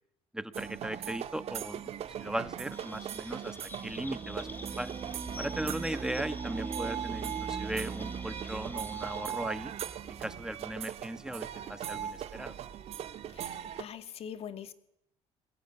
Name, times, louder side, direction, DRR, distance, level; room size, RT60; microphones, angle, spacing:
voice 1, 0.3-3.6 3.8-4.5 4.8-4.9 5.4-9.7 10.2-12.5, right 1 dB, 5° right, 13 dB, 1.3 m, -38 dB
sound 1, 0.5-13.8, right 10 dB, 60° right, 1.9 m, -40 dB
Chirp tweet, 2.7-9.3, left 2 dB, 15° left, 4.2 m, -49 dB
sound 2, 3.7-10.9, right 5 dB, 30° right, 1.9 m, -41 dB
voice 2, 13.3-14.7, left 8 dB, 60° left, 10 dB, 2.3 m, -43 dB
22.0 x 18.0 x 9.7 m, 0.78 s
cardioid pair, 100°, 12 cm